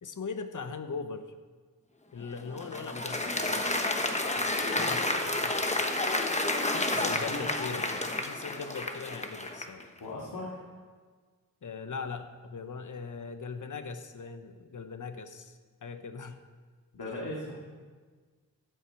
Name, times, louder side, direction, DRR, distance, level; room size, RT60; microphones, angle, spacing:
voice 1, 0.0-1.3 2.1-3.8 4.3-5.7 6.7-9.8 11.6-16.4, left 5 dB, 55° left, 9 dB, 0.9 m, -40 dB
Applause, 2.2-9.8, left 2 dB, 20° left, 1.1 m, -30 dB
voice 2, 6.9-7.5 10.0-10.6 16.9-17.5, left 2 dB, 90° left, -5 dB, 2.2 m, -38 dB
13.5 x 8.9 x 4.7 m, 1.5 s
wide cardioid pair, 80°, 36 cm